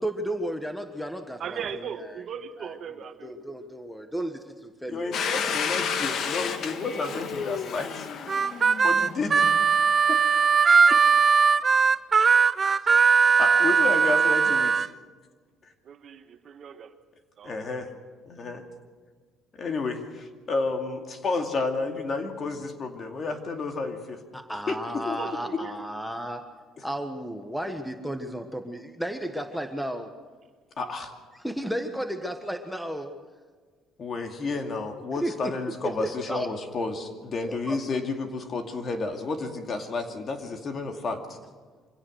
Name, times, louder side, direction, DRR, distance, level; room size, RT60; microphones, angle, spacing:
voice 1, 0.0-2.2 2.6-2.8 3.2-5.5 24.3-26.5 26.8-30.1 31.3-33.1 35.2-35.5 35.8-36.5 37.4-37.8, right 1 dB, ahead, 7 dB, 1.4 m, -33 dB
voice 2, 1.4-3.3 15.8-16.9 17.4-17.5 25.2-25.8, right 7 dB, 50° right, 8 dB, 1.5 m, -38 dB
voice 3, 4.9-7.9 8.8-9.4 13.4-14.9 17.4-17.9 18.3-18.6 19.5-24.2 24.7-24.8 25.0-25.2 25.5-25.6 26.8-26.9 30.8-31.1 34.0-41.4, left 3 dB, 40° left, 5 dB, 2.5 m, -31 dB
Domestic sounds home sounds, 5.1-9.8, left 6 dB, 55° left, 1.5 m, -31 dB
Harmonica, 8.3-14.9, right 5 dB, 30° right, 0.6 m, -20 dB
24.5 x 17.0 x 6.5 m, 1.5 s
cardioid pair, 115°, 0 cm